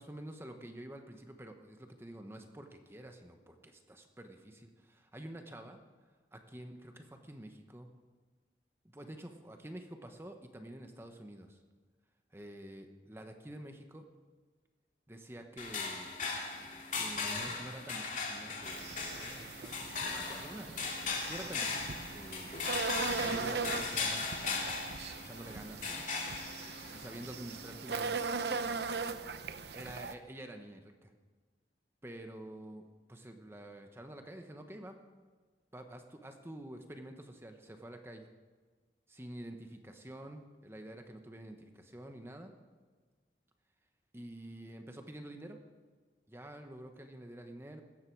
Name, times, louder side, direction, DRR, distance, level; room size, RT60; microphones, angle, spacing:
voice 1, 0.0-5.8 6.3-7.9 8.9-11.6 12.3-14.1 15.1-16.1 17.0-18.9 19.1-22.5 23.1-24.7 25.2-26.1 26.9-28.2 29.7-31.1 32.0-35.0 35.7-38.3 39.1-42.5 44.1-45.6 46.3-47.8, right 1 dB, 15° right, 5 dB, 1.1 m, -48 dB
sound 1, 15.6-28.8, left 4 dB, 45° left, 2.5 m, -39 dB
sound 2, 18.6-30.1, right 5 dB, 70° right, 0.8 m, -39 dB
17.0 x 13.5 x 4.7 m, 1.4 s
head